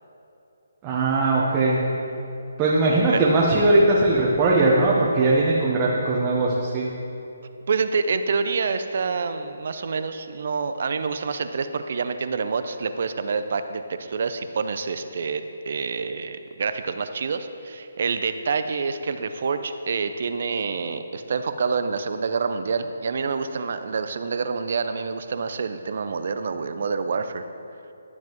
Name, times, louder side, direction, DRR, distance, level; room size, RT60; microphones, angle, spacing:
voice 1, 0.8-1.8 2.6-6.9, right 2 dB, 20° right, -5 dB, 1.0 m, -20 dB
voice 2, 7.7-27.4, right 5 dB, 55° right, 10 dB, 0.5 m, -27 dB
12.0 x 7.3 x 3.0 m, 2.8 s
figure-of-eight pair, 145°, 0 cm